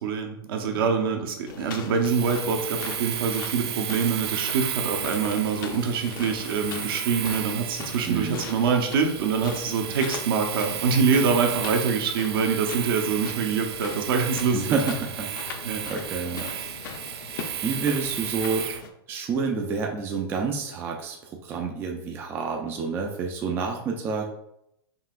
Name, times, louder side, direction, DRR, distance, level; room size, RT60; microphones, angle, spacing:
voice 1, 0.0-14.8 15.6-15.8, right 5 dB, 60° right, 3 dB, 0.8 m, -25 dB
sound 1, 1.5-18.9, left 5 dB, 55° left, 0.6 m, -40 dB
Domestic sounds home sounds, 2.0-18.9, right 10 dB, 80° right, 0.4 m, -34 dB
voice 2, 8.0-8.4 14.5-15.6 15.9-16.5 17.6-18.7 19.1-24.3, right 5 dB, 15° right, 1 dB, 0.3 m, -29 dB
5.4 x 2.9 x 2.4 m, 0.78 s
supercardioid pair, 160°, 13 cm